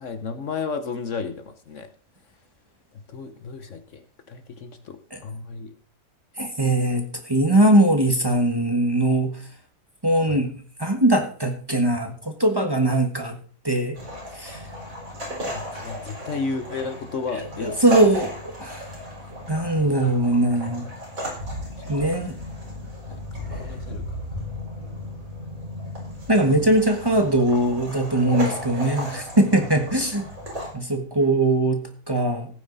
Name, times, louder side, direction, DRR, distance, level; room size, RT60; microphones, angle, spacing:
voice 1, 0.0-1.9 3.1-4.0 4.3-5.7 10.3-10.4 15.5-17.8 20.0-20.2 22.0-22.1 23.1-24.2, left 4 dB, 60° left, 9 dB, 1.2 m, -33 dB
voice 2, 6.4-9.4 10.0-10.5 10.8-13.4 13.6-14.0 14.3-14.6 17.6-18.3 18.6-18.9 19.5-20.9 21.9-22.3 26.3-30.3 30.7-32.5, right 1 dB, 15° right, 4 dB, 1.5 m, -21 dB
sound 1, 14.0-30.7, equal, 65° right, 4.9 m, -35 dB
16.0 x 9.2 x 4.0 m, 0.42 s
omnidirectional pair, 1.6 m